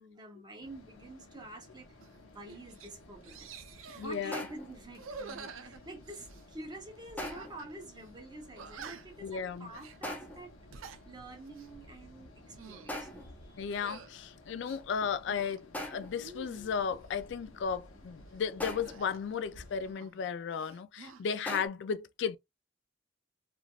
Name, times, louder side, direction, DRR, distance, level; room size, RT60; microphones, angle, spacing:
voice 1, 0.0-2.0 2.2-13.8 14.8-14.9, right 1 dB, 20° right, 0.8 m, -48 dB
sound 1, 0.6-19.9, left 1 dB, 85° left, 0.9 m, -55 dB
sound 2, 2.0-2.2 2.5-2.9 3.2-4.1 4.9-6.5 7.2-7.7 8.0-8.1 8.6-9.2 9.7-10.0 10.5-11.0 11.5-11.7 12.4-13.0 13.7-14.1 14.6-15.6 16.1-17.0 18.8-20.3 20.5-21.2, right 5 dB, 85° right, 0.5 m, -49 dB
voice 2, 4.0-4.4 9.2-9.7 13.6-22.4, left 6 dB, 60° left, 0.3 m, -35 dB
sound 3, 4.3-4.8 7.2-7.7 10.0-10.5 12.9-13.4 15.7-16.3 18.6-19.1 21.5-21.7, left 1 dB, 10° left, 0.5 m, -41 dB
3.2 x 2.4 x 2.3 m
head